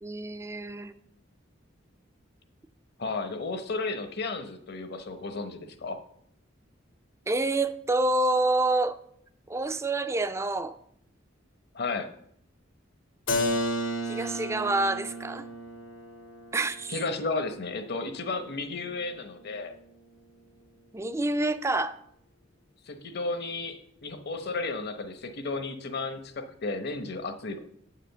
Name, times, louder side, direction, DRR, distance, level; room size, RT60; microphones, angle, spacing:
voice 1, 0.0-0.9 7.3-9.0 9.5-10.8 14.0-15.5 16.5-17.0 20.9-22.0, right 2 dB, 15° right, 11 dB, 0.4 m, -27 dB
voice 2, 3.0-6.0 11.7-12.1 16.9-19.7 22.8-27.6, left 3 dB, 55° left, 8 dB, 0.9 m, -33 dB
Keyboard (musical), 13.3-18.9, left 1 dB, 85° left, 1.5 m, -34 dB
8.1 x 5.0 x 6.8 m, 0.70 s
head